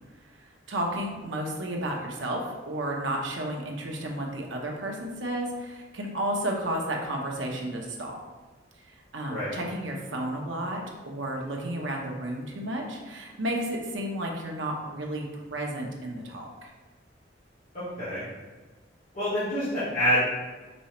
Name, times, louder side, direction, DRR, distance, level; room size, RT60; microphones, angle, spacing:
voice 1, 0.7-8.2 9.1-16.7, right 1 dB, 90° right, 0 dB, 0.9 m, -32 dB
voice 2, 19.1-20.2, equal, 40° left, -13 dB, 1.5 m, -26 dB
5.3 x 3.3 x 3.0 m, 1.3 s
head